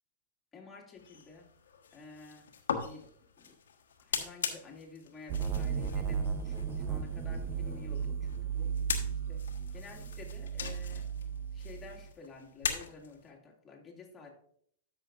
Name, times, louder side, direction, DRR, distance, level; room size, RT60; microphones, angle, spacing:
voice 1, 0.5-1.5 1.9-2.5 2.8-3.1 3.4-3.6 4.0-8.7 9.3-9.4 9.7-11.1 11.5-14.3, left 4 dB, 20° left, -2 dB, 2.1 m, -51 dB
sound 1, 1.0-13.3, left 7 dB, 75° left, 1.2 m, -41 dB
sound 2, 5.3-12.1, right 7 dB, 35° right, 0.8 m, -35 dB
13.0 x 6.1 x 2.5 m, 0.65 s
hypercardioid pair, 105°, 0 cm